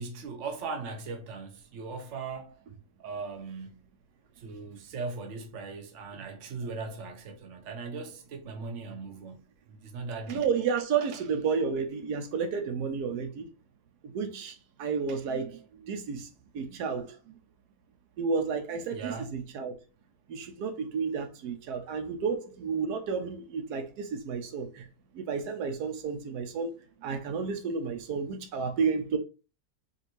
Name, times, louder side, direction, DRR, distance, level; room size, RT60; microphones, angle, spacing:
voice 1, 0.0-2.6 3.0-3.8 4.4-10.4 18.9-19.3, right 4 dB, 55° right, 1.1 m, -39 dB
voice 2, 10.3-13.5 14.0-16.3 16.5-17.4 18.2-19.7 20.3-24.9 25.1-26.7 27.0-29.2, right 5 dB, 85° right, 1.2 m, -31 dB
5.1 x 2.6 x 3.0 m
omnidirectional pair, 1.6 m